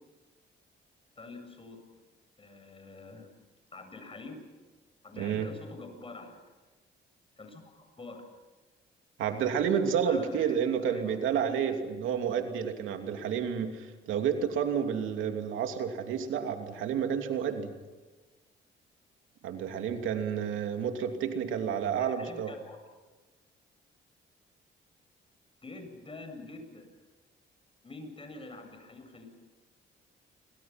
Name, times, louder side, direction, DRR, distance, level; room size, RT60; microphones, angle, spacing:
voice 1, 1.2-1.8 2.4-3.3 3.7-4.4 5.0-6.3 7.4-8.2 10.0-11.5 22.0-22.8 25.6-26.9 27.8-29.3, left 3 dB, 25° left, 5 dB, 8.0 m, -46 dB
voice 2, 5.2-5.5 9.2-17.7 19.4-22.5, right 7 dB, 85° right, 5 dB, 2.8 m, -30 dB
28.5 x 25.5 x 6.0 m, 1.3 s
cardioid pair, 90°, 20 cm